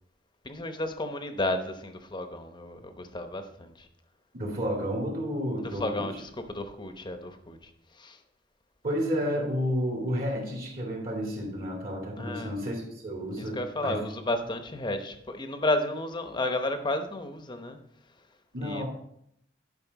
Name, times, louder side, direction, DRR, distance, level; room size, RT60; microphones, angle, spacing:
voice 1, 0.4-3.9 5.6-8.2 12.2-12.6 13.4-17.8 18.6-18.8, left 2 dB, 25° left, 7 dB, 0.8 m, -32 dB
voice 2, 4.3-6.0 8.8-14.0 18.5-18.9, equal, 50° right, -2 dB, 2.4 m, -31 dB
11.0 x 5.3 x 4.0 m, 0.73 s
head